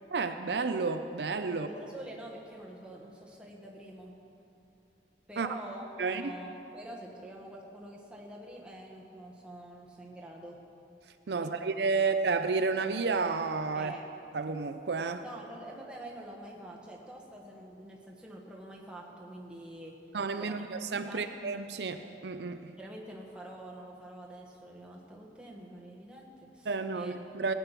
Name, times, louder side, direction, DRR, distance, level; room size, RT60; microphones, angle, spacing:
voice 1, 0.1-1.7 5.4-5.5 6.0-6.3 11.3-13.9 14.3-15.2 20.1-22.7 26.7-27.5, right 4 dB, 75° right, 8 dB, 0.5 m, -31 dB
voice 2, 1.5-4.2 5.3-10.6 11.3-12.1 13.7-14.0 15.2-20.0 20.4-20.6 21.1-21.3 22.8-27.1, right 1 dB, 5° right, -2 dB, 1.4 m, -46 dB
17.5 x 8.5 x 5.9 m, 2.7 s
head